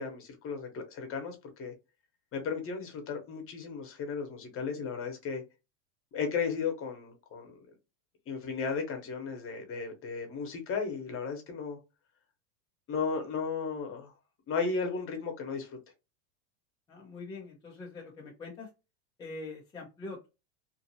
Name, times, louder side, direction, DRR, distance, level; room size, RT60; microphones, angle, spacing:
voice 1, 0.0-1.7 2.3-5.4 6.1-7.6 8.3-11.8 12.9-14.1 14.5-15.7, left 5 dB, 30° left, 0.9 m, -35 dB
voice 2, 16.9-18.7 19.2-20.3, left 3 dB, 10° left, 0.3 m, -43 dB
2.6 x 2.4 x 2.7 m
supercardioid pair, 135°, 45 cm